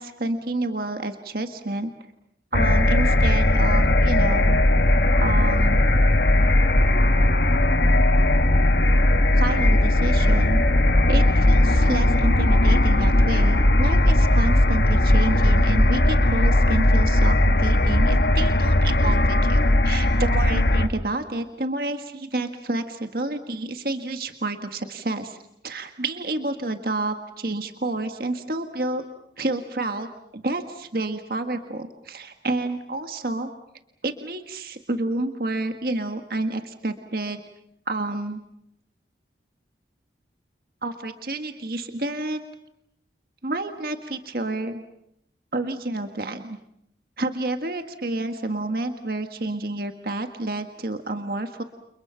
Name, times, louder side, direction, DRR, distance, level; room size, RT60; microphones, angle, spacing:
voice 1, 0.0-1.9 2.5-4.6 5.2-5.8 9.4-10.6 11.1-25.4 25.6-29.0 29.4-33.5 34.0-37.4 37.9-38.4 40.8-42.4 43.4-44.8 45.5-46.6 47.2-51.6, right 2 dB, 55° right, 6 dB, 1.7 m, -29 dB
sound 1, 2.5-20.9, left 1 dB, 65° left, 1.5 m, -18 dB
29.5 x 29.5 x 5.8 m, 0.76 s
head